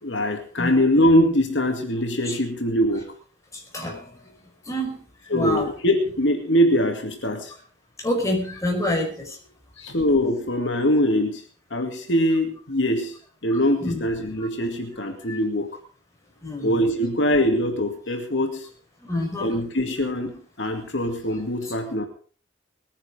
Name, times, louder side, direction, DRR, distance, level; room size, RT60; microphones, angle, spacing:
voice 1, 0.0-3.1 5.3-7.5 9.8-11.4 11.7-13.1 13.4-15.7 16.6-18.7 19.4-22.1, equal, 70° left, 4 dB, 2.4 m, -22 dB
voice 2, 3.7-4.1 4.7-5.0 5.3-5.7 8.0-9.4 13.5-14.0 15.3-15.4 16.4-16.8 19.0-19.6, left 1 dB, 15° left, 0 dB, 5.3 m, -27 dB
21.0 x 10.0 x 5.1 m, 0.41 s
head